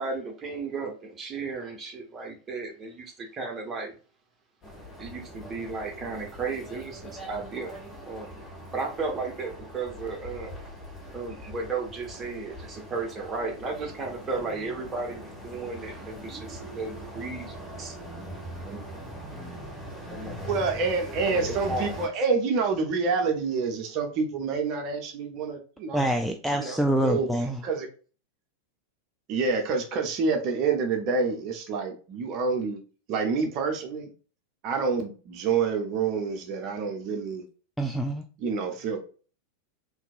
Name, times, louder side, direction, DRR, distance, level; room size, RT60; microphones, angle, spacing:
voice 1, 0.0-3.9 5.0-7.8 8.0-8.4 8.7-10.6 11.1-17.9 18.7-19.1 19.9-20.5 21.1-22.0, right 4 dB, 20° right, 1 dB, 1.0 m, -35 dB
sound 1, 4.6-22.1, equal, 30° left, 1.3 m, -41 dB
voice 2, 20.5-26.0 26.5-27.3 27.6-27.9 29.3-32.8 33.1-34.1 34.6-37.4 38.4-39.0, right 4 dB, 40° right, 4 dB, 0.6 m, -27 dB
voice 3, 25.9-27.6 37.8-38.2, right 1 dB, ahead, 3 dB, 0.3 m, -26 dB
3.8 x 2.7 x 2.4 m, 0.38 s
figure-of-eight pair, 90°, 0 cm